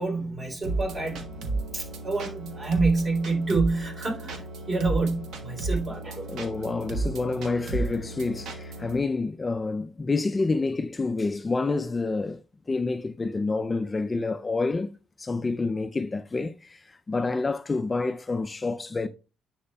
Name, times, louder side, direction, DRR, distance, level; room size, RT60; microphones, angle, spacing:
voice 1, 0.0-6.3, right 3 dB, 35° right, 3.0 m, -28 dB
sound 1, 0.6-9.0, right 3 dB, 80° right, 1.2 m, -33 dB
voice 2, 6.3-12.4 12.7-14.9 15.2-19.1, left 3 dB, 25° left, 0.4 m, -28 dB
10.0 x 4.9 x 2.2 m
cardioid pair, 90°, 0 cm